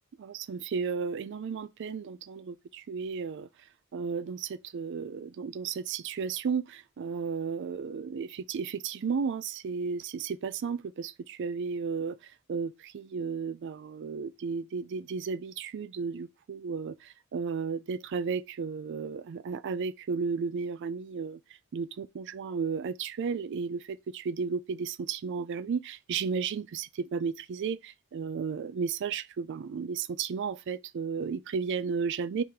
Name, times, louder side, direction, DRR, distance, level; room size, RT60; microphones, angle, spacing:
voice 1, 0.2-3.5 3.9-21.4 21.7-32.4, right 5 dB, 55° right, 0.3 m, -34 dB
3.6 x 3.4 x 4.3 m
head